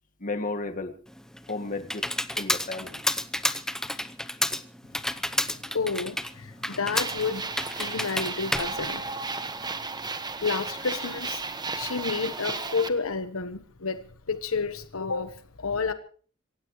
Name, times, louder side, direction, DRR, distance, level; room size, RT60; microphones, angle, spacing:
voice 1, 0.2-1.0 1.5-2.1 2.3-3.0, left 3 dB, 40° left, 6 dB, 1.8 m, -33 dB
Computer keyboard, 1.1-9.7, left 1 dB, 5° left, 0.8 m, -31 dB
voice 2, 5.3-7.4 7.8-9.0 10.4-11.4 11.7-15.9, left 4 dB, 75° left, 11 dB, 1.2 m, -30 dB
sound 1, 6.9-12.9, right 4 dB, 20° right, 1.4 m, -34 dB
26.5 x 16.0 x 3.1 m, 0.42 s
head